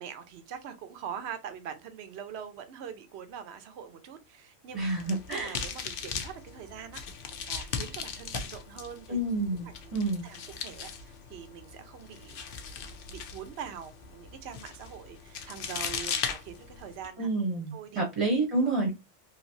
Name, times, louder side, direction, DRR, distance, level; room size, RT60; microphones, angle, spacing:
voice 1, 0.0-4.8 5.3-7.0 7.5-9.2 9.8-10.0 10.2-17.3 17.7-18.0 18.6-18.8, right 8 dB, 60° right, 0.9 m, -43 dB
sound 1, 4.7-17.1, left 6 dB, 60° left, 0.6 m, -39 dB
voice 2, 4.7-5.6 9.1-10.3 17.2-18.9, right 2 dB, 25° right, 0.9 m, -29 dB
3.2 x 2.7 x 2.6 m
omnidirectional pair, 1.4 m